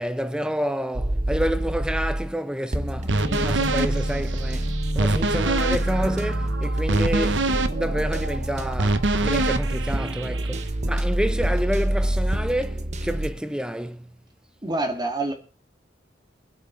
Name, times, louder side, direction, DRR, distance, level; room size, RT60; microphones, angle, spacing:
voice 1, 0.0-14.2, equal, 5° right, 0.8 m, -29 dB
sound 1, 0.9-2.3 2.7-13.3, right 1 dB, 40° right, 1.0 m, -27 dB
sound 2, 3.1-10.4, left 2 dB, 50° left, 1.5 m, -38 dB
sound 3, 3.1-10.7, right 2 dB, 85° right, 1.0 m, -26 dB
voice 2, 14.6-15.3, right 2 dB, 25° right, 2.3 m, -27 dB
24.5 x 8.2 x 3.9 m
head